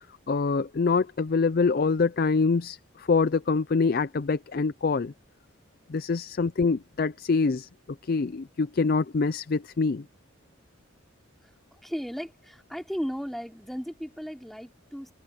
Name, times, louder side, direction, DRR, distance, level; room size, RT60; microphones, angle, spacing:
voice 1, 0.3-5.1 5.9-7.7 8.0-10.0, left 4 dB, 50° left, 0.4 m, -25 dB
voice 2, 11.4-15.1, equal, ahead, 4.0 m, -36 dB
open air
head